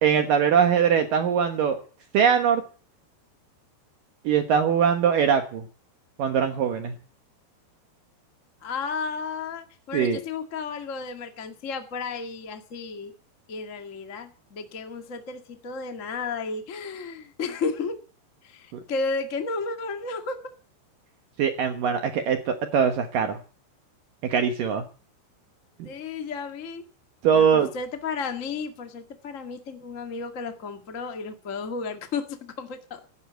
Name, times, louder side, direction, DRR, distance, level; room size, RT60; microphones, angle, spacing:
voice 1, 0.0-1.8 2.1-2.6 4.2-5.6 6.2-6.9 9.9-10.2 18.7-18.8 21.4-23.4 24.2-24.8 25.8-25.9 27.2-27.7, right 7 dB, 65° right, 7 dB, 2.4 m, -22 dB
voice 2, 8.6-13.1 13.5-18.0 18.4-20.4 25.8-26.8 27.3-33.1, left 4 dB, 45° left, 6 dB, 1.0 m, -33 dB
14.5 x 11.0 x 8.1 m, 0.38 s
omnidirectional pair, 5.1 m